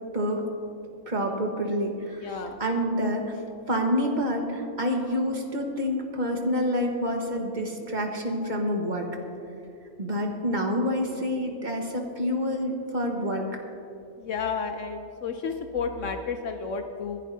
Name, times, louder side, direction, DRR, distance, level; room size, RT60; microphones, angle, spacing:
voice 1, 1.1-3.2 3.7-9.1 10.0-13.5, equal, 35° right, 1 dB, 1.5 m, -27 dB
voice 2, 2.2-2.6 14.2-17.2, left 5 dB, 70° left, 6 dB, 1.0 m, -32 dB
25.5 x 11.0 x 2.8 m, 2.5 s
omnidirectional pair, 1.4 m